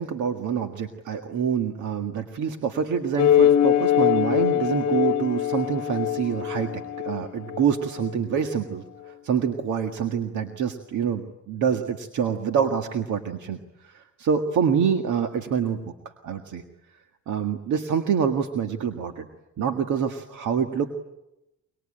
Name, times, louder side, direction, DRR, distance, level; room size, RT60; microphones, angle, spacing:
voice 1, 0.0-15.9 16.2-16.6 17.3-19.3 19.6-21.0, right 7 dB, 80° right, 5 dB, 1.9 m, -26 dB
sound 1, 3.2-8.1, left 11 dB, 60° left, 1.1 m, -23 dB
25.5 x 24.5 x 8.9 m, 0.92 s
cardioid pair, 90°, 30 cm